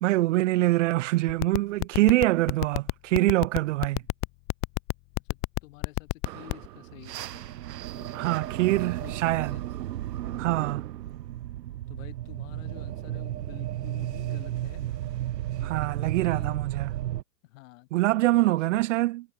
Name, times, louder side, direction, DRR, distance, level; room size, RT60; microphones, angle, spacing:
voice 1, 0.0-4.0 8.1-9.6 10.4-10.9 15.6-16.9 17.9-19.2, right 18 dB, 50° right, 0.7 m, -24 dB
sound 1, 1.3-6.7, left 38 dB, 30° left, 0.8 m, -26 dB
voice 2, 5.2-7.6 7.9-9.6 11.9-14.9 15.6-16.6 17.4-18.8, left 20 dB, 50° left, 6.5 m, -49 dB
sound 2, 6.2-17.2, right 13 dB, 90° right, 0.6 m, -34 dB
hypercardioid pair, 120°, 48 cm